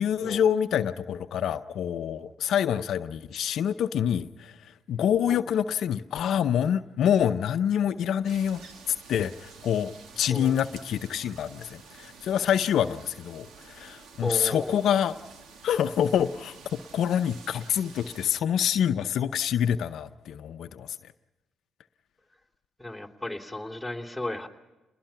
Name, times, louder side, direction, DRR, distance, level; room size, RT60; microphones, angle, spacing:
voice 1, 0.0-4.5 4.9-8.6 9.1-15.2 15.6-21.0, left 9 dB, 70° left, 9 dB, 0.7 m, -26 dB
sound 1, 8.2-18.3, right 5 dB, 70° right, 2.2 m, -50 dB
voice 2, 14.2-14.8 22.8-24.5, left 1 dB, ahead, 5 dB, 3.3 m, -34 dB
29.0 x 20.5 x 5.8 m, 1.1 s
supercardioid pair, 55°, 0 cm